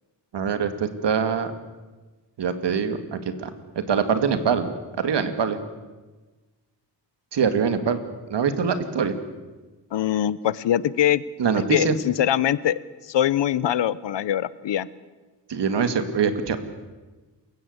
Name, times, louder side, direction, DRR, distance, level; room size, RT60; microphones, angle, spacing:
voice 1, 0.3-1.5 2.4-3.5 3.9-4.7 5.0-5.6 7.3-8.0 8.3-9.2 11.4-12.0 15.5-16.6, right 6 dB, 70° right, 9 dB, 2.3 m, -23 dB
voice 2, 9.9-11.2 11.7-12.8 13.1-14.9, left 11 dB, 75° left, 18 dB, 0.9 m, -22 dB
28.0 x 16.0 x 8.1 m, 1.2 s
wide cardioid pair, 115°, 43 cm